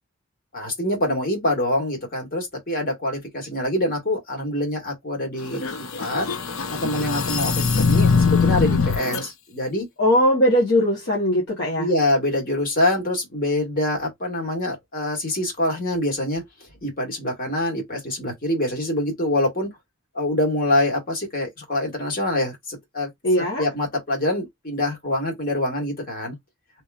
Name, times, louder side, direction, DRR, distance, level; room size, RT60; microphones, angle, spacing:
voice 1, 0.5-6.3 6.7-9.9 11.8-16.4 16.8-19.7 20.1-23.1 23.6-26.4, left 1 dB, 45° left, 1.7 m, -25 dB
sound 1, 5.5-9.2, left 5 dB, 85° left, 0.6 m, -21 dB
voice 2, 10.0-11.9 23.2-23.7, equal, 60° left, 1.0 m, -19 dB
3.0 x 3.0 x 2.3 m
head